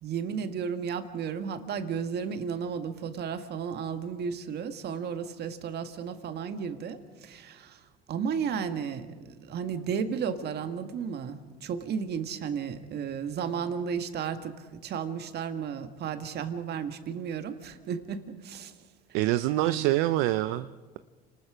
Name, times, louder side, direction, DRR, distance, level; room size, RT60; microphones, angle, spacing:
voice 1, 0.0-18.7 19.6-19.9, right 7 dB, 50° right, 8 dB, 1.9 m, -33 dB
voice 2, 19.1-21.0, right 15 dB, 70° right, 12 dB, 0.6 m, -26 dB
29.5 x 19.5 x 5.1 m, 1.4 s
supercardioid pair, 80°, 21 cm